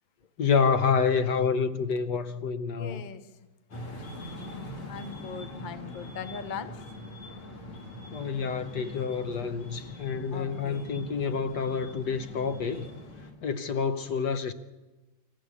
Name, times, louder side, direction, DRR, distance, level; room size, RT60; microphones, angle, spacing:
voice 1, 0.4-3.0 8.1-12.8 13.4-14.5, left 6 dB, 60° left, 1.3 m, -28 dB
voice 2, 2.7-3.2 4.5-6.8 10.3-11.0, left 6 dB, 35° left, 0.8 m, -40 dB
sound 1, 3.7-13.3, left 1 dB, 85° left, 3.9 m, -43 dB
26.0 x 14.5 x 8.4 m
omnidirectional pair, 2.3 m